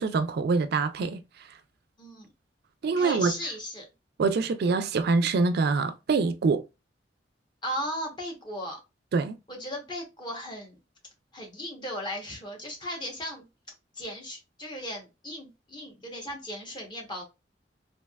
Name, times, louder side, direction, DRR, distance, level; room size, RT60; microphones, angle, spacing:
voice 1, 0.0-1.6 2.8-3.3 4.2-6.6 9.1-9.4, right 4 dB, 60° right, 0.3 m, -25 dB
voice 2, 2.0-2.3 2.8-3.8 7.6-8.8 9.5-10.8 11.3-13.5 14.0-17.2, equal, 25° left, 0.9 m, -36 dB
3.2 x 2.7 x 2.3 m
head